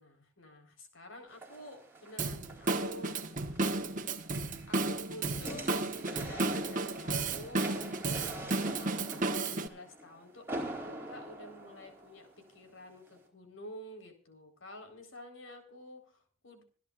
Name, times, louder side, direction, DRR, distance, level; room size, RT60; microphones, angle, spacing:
voice 1, 0.0-3.9 4.7-16.6, left 1 dB, 70° left, 4 dB, 4.2 m, -50 dB
sound 1, 1.3-12.5 13.1-13.2, right 1 dB, 10° right, 3.9 m, -45 dB
Drum kit / Drum, 2.2-9.7, right 3 dB, 40° right, 1.3 m, -33 dB
27.0 x 11.0 x 2.5 m, 0.39 s
head